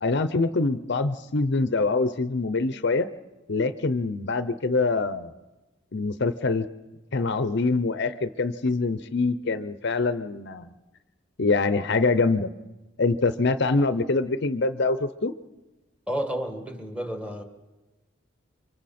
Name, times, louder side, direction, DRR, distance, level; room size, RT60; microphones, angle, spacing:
voice 1, 0.0-3.1 3.5-5.3 5.9-6.7 7.1-10.7 11.4-12.5 13.0-15.3, left 3 dB, 55° left, 12 dB, 0.7 m, -24 dB
voice 2, 16.1-17.4, equal, 5° right, 5 dB, 1.9 m, -31 dB
29.5 x 25.0 x 4.3 m, 1.1 s
head